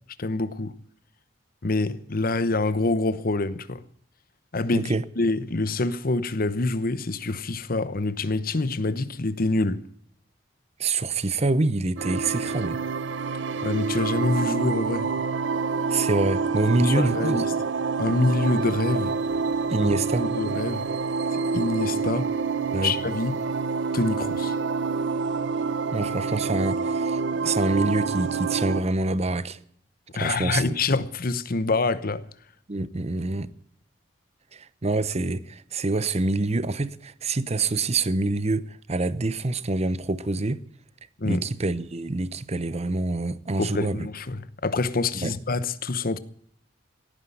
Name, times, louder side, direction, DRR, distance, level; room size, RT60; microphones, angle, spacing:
voice 1, 0.2-0.8 1.6-3.8 4.5-9.8 13.6-15.1 16.8-17.5 18.0-19.2 20.2-20.9 21.5-22.3 22.8-23.4 23.9-24.5 30.1-32.2 41.2-41.4 43.6-46.2, left 2 dB, 50° left, 1.0 m, -26 dB
voice 2, 10.8-12.8 15.9-17.4 19.7-20.3 22.7-22.9 25.9-29.6 30.2-30.7 32.7-33.5 34.5-38.6 38.9-40.6 41.2-44.1 45.2-45.3, right 2 dB, 35° right, 0.8 m, -26 dB
sound 1, 12.0-28.8, right 4 dB, 70° right, 0.9 m, -27 dB
17.0 x 9.9 x 7.9 m
head